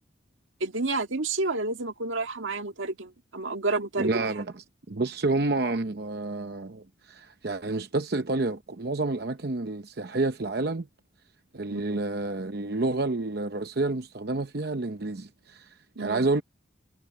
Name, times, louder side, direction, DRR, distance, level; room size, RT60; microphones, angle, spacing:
voice 1, 0.6-4.2 11.7-12.0 16.0-16.3, right 3 dB, 90° right, 1.9 m, -30 dB
voice 2, 4.0-10.9 11.5-16.4, right 2 dB, 55° right, 0.8 m, -29 dB
head